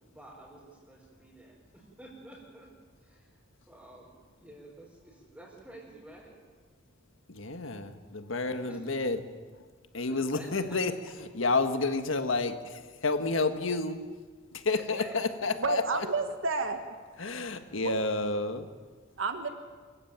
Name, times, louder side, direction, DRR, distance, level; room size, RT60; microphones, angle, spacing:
voice 1, 0.1-2.7 3.0-3.4 3.7-6.3 8.7-8.9 10.1-10.5 14.7-15.1 15.5-15.6 17.6-17.7, right 1 dB, 5° right, -7 dB, 4.9 m, -50 dB
voice 2, 7.3-9.2 9.9-10.9 11.3-14.0 14.5-15.8 17.2-18.7, left 3 dB, 75° left, 8 dB, 1.6 m, -30 dB
voice 3, 15.6-16.9 17.8-18.0 19.2-19.5, right 4 dB, 80° right, 7 dB, 1.7 m, -30 dB
25.0 x 15.5 x 9.0 m, 1.5 s
head